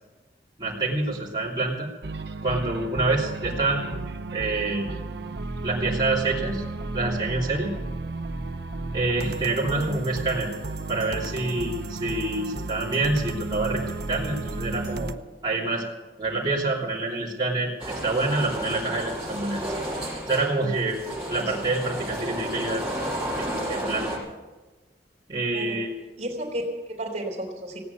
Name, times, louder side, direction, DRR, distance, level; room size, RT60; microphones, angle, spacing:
voice 1, 0.6-1.9 2.4-4.0 4.3-4.9 5.6-6.6 6.9-7.7 8.9-10.5 10.9-13.8 14.1-15.1 15.4-15.8 16.2-19.6 20.3-21.0 21.3-22.8 23.4-24.1 25.3-25.9, right 2 dB, 25° right, -8 dB, 3.1 m, -27 dB
sound 1, 2.0-15.2, right 2 dB, 70° right, 0.8 m, -33 dB
voice 2, 9.7-10.0 21.5-21.6 25.5-25.8 26.2-27.8, right 1 dB, 40° right, 0 dB, 3.5 m, -33 dB
sound 2, 17.8-24.2, right 1 dB, 5° right, 6.6 m, -32 dB
17.0 x 9.6 x 8.2 m, 1.2 s
head